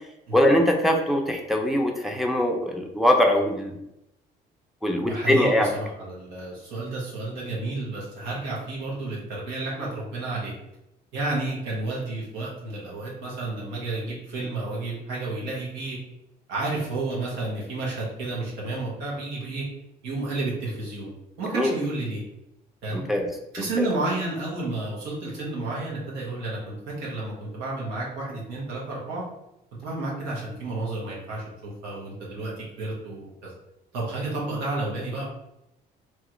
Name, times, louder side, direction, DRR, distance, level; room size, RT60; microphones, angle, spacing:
voice 1, 0.3-3.8 4.8-5.7 21.6-21.7 22.9-23.3 23.8-23.9, left 1 dB, ahead, 1 dB, 0.5 m, -22 dB
voice 2, 5.0-10.5 11.1-16.0 16.5-19.7 20.0-21.1 21.4-22.2 22.8-23.0 23.5-29.3 29.8-33.5 33.9-35.2, right 2 dB, 90° right, -5 dB, 1.2 m, -31 dB
3.0 x 2.4 x 3.0 m, 0.85 s
cardioid pair, 110°, 17 cm